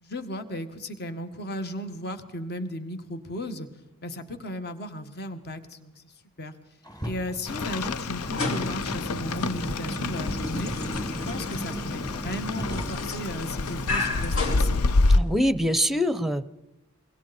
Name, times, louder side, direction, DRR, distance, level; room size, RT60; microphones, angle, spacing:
voice 1, 0.0-3.7 4.0-6.6 7.0-10.8 11.2-14.8, left 1 dB, 45° left, 8 dB, 1.8 m, -35 dB
Car, 6.8-13.4, right 1 dB, 20° left, 2.3 m, -37 dB
Rain, 7.5-15.2, left 3 dB, 85° left, 0.7 m, -28 dB
sound 1, 8.2-15.4, left 2 dB, 65° left, 4.0 m, -33 dB
voice 2, 15.1-16.5, equal, ahead, 14 dB, 0.8 m, -24 dB
26.0 x 23.0 x 4.4 m, 0.92 s
head